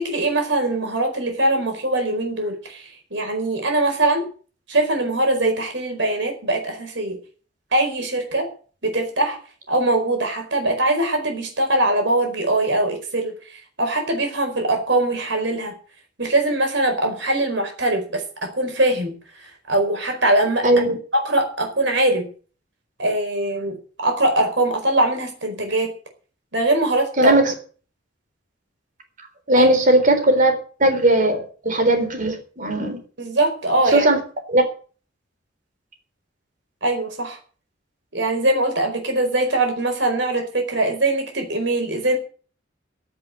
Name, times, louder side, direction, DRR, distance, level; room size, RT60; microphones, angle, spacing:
voice 1, 0.0-4.2 4.7-7.2 7.7-8.5 8.8-9.4 9.7-13.3 13.8-15.7 16.2-19.1 19.4-20.7 21.1-22.2 23.0-25.9 26.5-27.3 29.5-29.7 33.2-34.1 36.8-37.4 38.1-42.2, right 2 dB, 65° right, 4 dB, 4.9 m, -22 dB
voice 2, 20.6-20.9 27.2-27.5 29.5-33.0 33.9-34.2 34.5-34.6, right 1 dB, 45° right, 6 dB, 3.8 m, -18 dB
15.0 x 7.7 x 7.8 m, 0.41 s
head